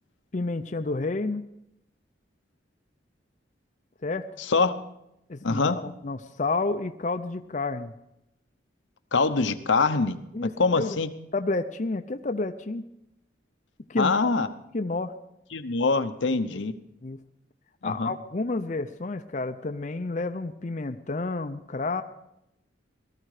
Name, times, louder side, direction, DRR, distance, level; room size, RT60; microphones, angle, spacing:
voice 1, 0.3-1.5 4.0-4.3 5.3-7.9 10.3-11.0 11.3-12.8 13.9-14.4 14.7-15.2 16.5-16.6 17.0-17.2 17.8-22.0, left 3 dB, 40° left, 7 dB, 0.6 m, -30 dB
voice 2, 5.4-5.8 9.1-10.2 10.6-11.1 14.0-14.5 15.5-16.7 17.8-18.1, left 4 dB, 80° left, 9 dB, 0.9 m, -24 dB
18.5 x 13.0 x 4.9 m, 0.82 s
head